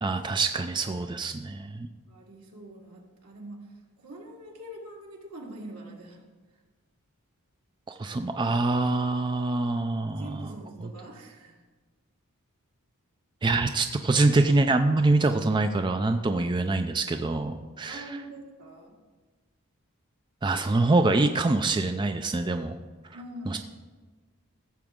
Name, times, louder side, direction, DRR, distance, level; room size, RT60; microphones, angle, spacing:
voice 1, 0.0-1.9 7.9-10.5 13.4-18.2 20.4-22.8 23.5-23.6, right 2 dB, 20° right, 7 dB, 0.3 m, -25 dB
voice 2, 2.1-6.2 10.0-11.6 17.9-18.9 23.1-23.6, right 1 dB, 85° right, -2 dB, 2.2 m, -44 dB
15.0 x 7.0 x 3.7 m, 1.3 s
head